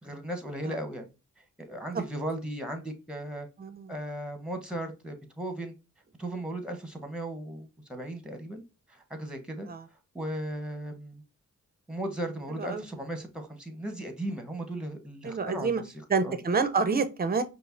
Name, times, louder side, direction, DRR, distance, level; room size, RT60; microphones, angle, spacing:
voice 1, 0.0-1.1 1.6-3.5 3.9-5.7 6.2-8.6 8.9-9.7 10.1-11.2 11.9-15.8 16.2-16.4, right 1 dB, 5° right, 1.0 m, -36 dB
voice 2, 3.6-3.9 9.7-9.8 12.5-12.9 15.2-15.8 16.1-17.4, right 4 dB, 30° right, 0.5 m, -28 dB
5.1 x 2.0 x 2.5 m
cardioid pair, 65°, 31 cm